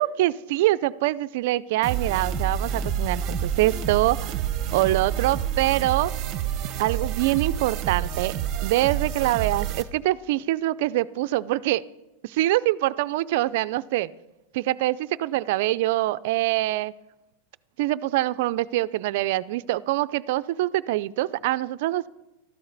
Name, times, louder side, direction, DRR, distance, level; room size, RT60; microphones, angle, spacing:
voice 1, 0.0-4.3 4.7-6.1 6.8-8.3 8.6-11.8 12.2-14.1 14.5-16.9 17.8-22.1, right 16 dB, 50° right, 16 dB, 0.4 m, -24 dB
sound 1, 1.8-9.8, right 9 dB, 25° right, 1.0 m, -28 dB
15.5 x 13.0 x 4.0 m, 0.96 s
supercardioid pair, 170°, 0 cm